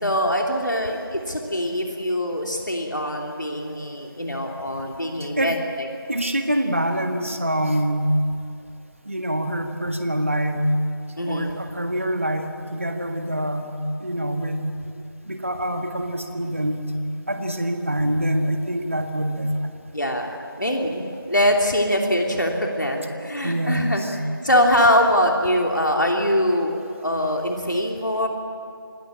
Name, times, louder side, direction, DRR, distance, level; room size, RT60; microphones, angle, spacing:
voice 1, 0.0-5.9 11.2-11.6 19.9-24.0 24.4-28.3, equal, 60° left, 1 dB, 3.0 m, -23 dB
voice 2, 6.1-8.2 9.1-10.7 11.3-14.7 15.3-16.9 17.3-19.6 23.4-24.2, equal, 35° right, 5 dB, 1.7 m, -25 dB
27.0 x 17.5 x 8.6 m, 2.5 s
figure-of-eight pair, 175°, 12 cm